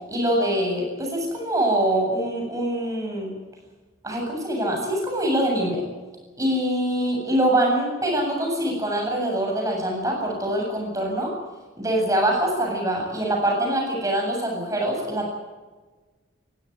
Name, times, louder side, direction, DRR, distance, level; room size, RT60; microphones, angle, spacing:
voice 1, 0.1-3.3 4.0-5.8 6.4-11.3 11.8-15.3, right 1 dB, 15° right, 0 dB, 8.0 m, -24 dB
21.5 x 16.5 x 9.7 m, 1.3 s
head